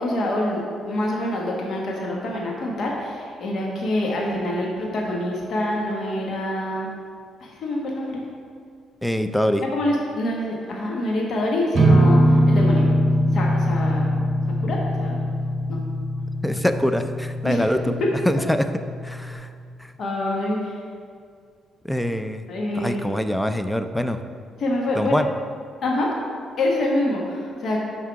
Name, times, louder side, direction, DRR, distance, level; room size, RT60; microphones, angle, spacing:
voice 1, 0.0-6.9 7.4-8.2 9.7-12.9 13.3-14.1 14.6-15.2 15.7-15.8 17.4-17.6 20.0-20.8 22.5-23.0 24.6-25.1 25.8-26.1 26.6-27.8, left 1 dB, 60° left, -2 dB, 1.2 m, -26 dB
voice 2, 9.0-9.6 16.4-18.0 18.3-18.6 19.0-19.5 21.8-22.4 22.8-24.2 24.9-25.3, left 1 dB, 5° left, 9 dB, 0.4 m, -23 dB
sound 1, 11.7-19.3, equal, 40° right, 1.0 m, -21 dB
6.0 x 5.5 x 4.7 m, 2.2 s
cardioid pair, 90°, 0 cm